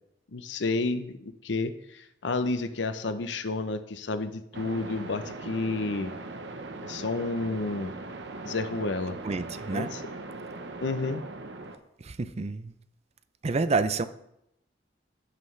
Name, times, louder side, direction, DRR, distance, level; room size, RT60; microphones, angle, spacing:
voice 1, 0.3-6.1 6.8-7.9 8.4-9.2 9.7-10.0 10.8-11.2, left 3 dB, 80° left, 10 dB, 0.7 m, -31 dB
sound 1, 4.5-11.8, right 2 dB, 70° right, 0.9 m, -40 dB
voice 2, 9.2-9.9 12.0-12.7 13.4-14.0, right 3 dB, 35° right, 12 dB, 0.5 m, -28 dB
16.0 x 5.8 x 3.3 m, 0.80 s
head